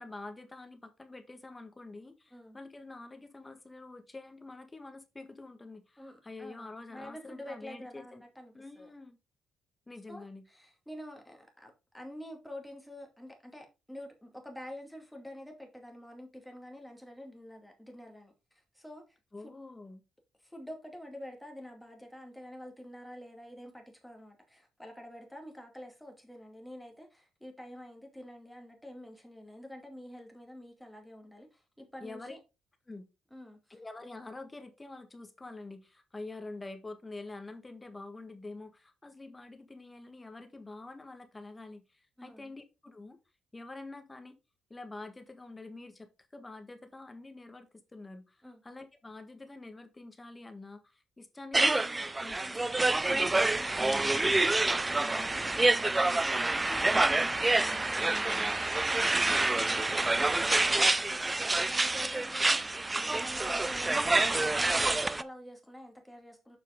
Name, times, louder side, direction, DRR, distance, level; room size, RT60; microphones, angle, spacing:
voice 1, 0.0-8.2 8.5-9.2 9.9-10.4 19.3-20.0 32.0-32.4 32.9-33.0 33.7-43.2 43.5-44.4 44.7-58.6, left 2 dB, 20° left, 1.4 m, -47 dB
voice 2, 6.0-8.9 10.1-19.2 19.4-19.5 20.4-32.4 33.3-33.8 42.2-42.5 48.4-48.6 58.8-66.6, equal, 5° left, 2.4 m, -48 dB
sound 1, 51.5-65.2, right 2 dB, 20° right, 0.4 m, -27 dB
7.4 x 5.6 x 3.6 m
cardioid pair, 90°, 0 cm